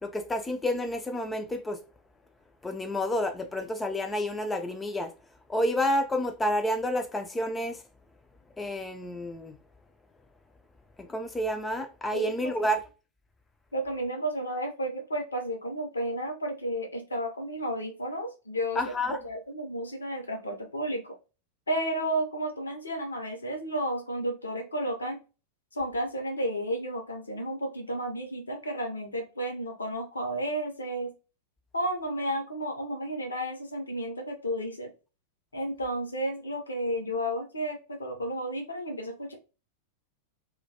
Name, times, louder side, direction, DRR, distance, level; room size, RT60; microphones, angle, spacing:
voice 1, 0.0-1.8 2.6-5.1 5.5-7.8 8.6-9.6 11.0-12.8 18.8-19.2, left 1 dB, 10° left, 0.3 m, -29 dB
voice 2, 12.1-12.5 13.7-18.8 19.2-21.2 21.7-25.2 25.7-31.1 31.7-34.9 35.5-39.3, right 1 dB, 75° left, 0.6 m, -32 dB
2.2 x 2.1 x 2.7 m
figure-of-eight pair, 90°, 0 cm